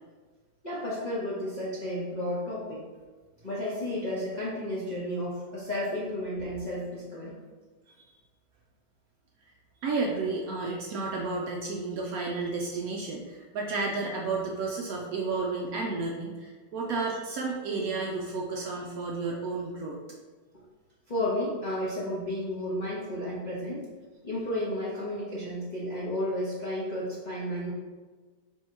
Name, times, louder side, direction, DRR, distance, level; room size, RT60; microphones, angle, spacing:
voice 1, 0.6-2.8 3.4-7.3 20.5-20.6 21.1-23.9 24.2-27.7, left 1 dB, 45° left, -8 dB, 0.5 m, -32 dB
voice 2, 9.8-20.0, right 3 dB, 70° right, -1 dB, 0.9 m, -32 dB
3.6 x 2.7 x 4.3 m, 1.4 s
omnidirectional pair, 1.9 m